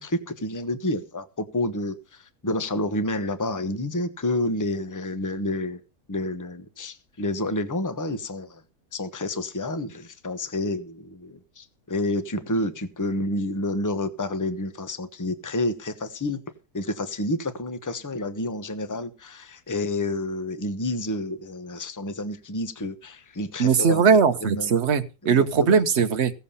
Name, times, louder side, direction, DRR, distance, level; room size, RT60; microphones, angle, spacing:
voice 1, 0.0-5.8 6.1-8.6 8.9-16.4 16.7-24.0 24.4-24.8 25.2-25.7, left 1 dB, 15° left, 11 dB, 0.8 m, -29 dB
voice 2, 23.6-26.3, right 6 dB, 50° right, 9 dB, 1.2 m, -20 dB
16.5 x 7.1 x 5.7 m, 0.32 s
omnidirectional pair, 1.7 m